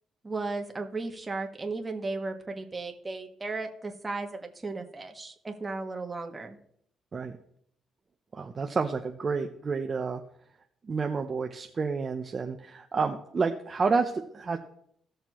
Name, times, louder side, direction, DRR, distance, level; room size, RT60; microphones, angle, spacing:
voice 1, 0.2-6.6, right 3 dB, 20° right, 3 dB, 1.6 m, -35 dB
voice 2, 8.3-10.2 10.8-14.6, right 4 dB, 40° right, 4 dB, 0.8 m, -29 dB
17.0 x 6.6 x 3.1 m, 0.68 s
cardioid pair, 90°, 0 cm